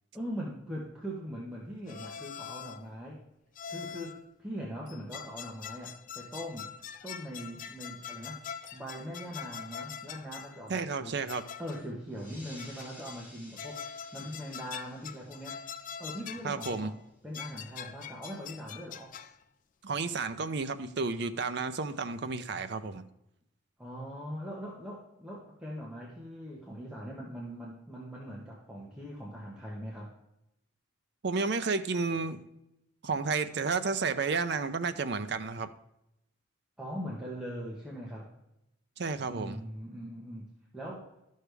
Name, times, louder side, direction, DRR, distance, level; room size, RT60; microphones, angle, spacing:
voice 1, 0.1-3.2 3.7-6.7 7.0-8.4 8.7-11.2 11.6-15.6 16.0-17.0 17.2-19.1 23.8-30.1 36.8-38.3 39.2-40.5 40.7-41.1, equal, 5° right, -5 dB, 1.2 m, -41 dB
sound 1, 1.9-2.9 3.5-4.3 4.9-10.6 11.3-11.9 12.6-13.3 13.6-16.9 17.3-19.4, left 8 dB, 40° left, 0.3 m, -44 dB
voice 2, 10.7-11.4 16.4-16.9 19.8-23.0 31.2-32.4 33.0-35.7 39.0-39.6, right 4 dB, 55° right, 10 dB, 0.5 m, -31 dB
sound 2, 12.1-17.2, left 1 dB, 25° left, 4.0 m, -55 dB
12.0 x 6.5 x 3.4 m, 0.85 s
head